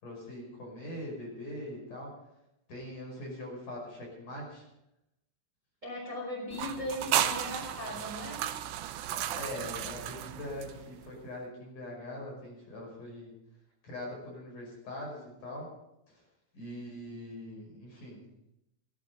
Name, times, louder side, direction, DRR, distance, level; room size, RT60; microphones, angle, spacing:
voice 1, 0.0-2.1 2.7-4.6 9.3-13.3 13.8-15.7 16.1-16.2 16.5-18.2, left 1 dB, 40° left, -2 dB, 6.6 m, -42 dB
voice 2, 5.8-8.4, left 1 dB, 15° right, -2 dB, 3.7 m, -38 dB
sound 1, 6.5-11.1, right 11 dB, 80° right, 2.8 m, -34 dB
17.0 x 11.5 x 5.5 m, 0.87 s
omnidirectional pair, 5.6 m